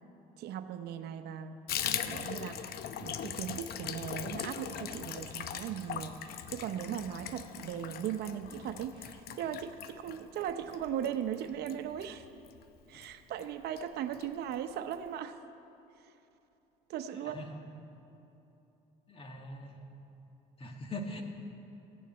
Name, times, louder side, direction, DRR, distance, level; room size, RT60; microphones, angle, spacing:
voice 1, 0.4-1.6 2.1-12.3 12.9-15.4 16.9-17.4, right 9 dB, 75° right, 9 dB, 0.7 m, -38 dB
Water tap faucet / Bathtub (filling or washing), 1.7-12.6 12.9-13.1 13.4-13.5 13.8-14.3 14.5-14.6 14.9-15.0, left 9 dB, 65° left, 0.7 m, -40 dB
voice 2, 17.1-17.6 19.1-19.8 20.6-21.2, left 1 dB, 35° left, 3 dB, 1.7 m, -42 dB
14.5 x 7.2 x 9.6 m, 2.9 s
cardioid pair, 110°, 17 cm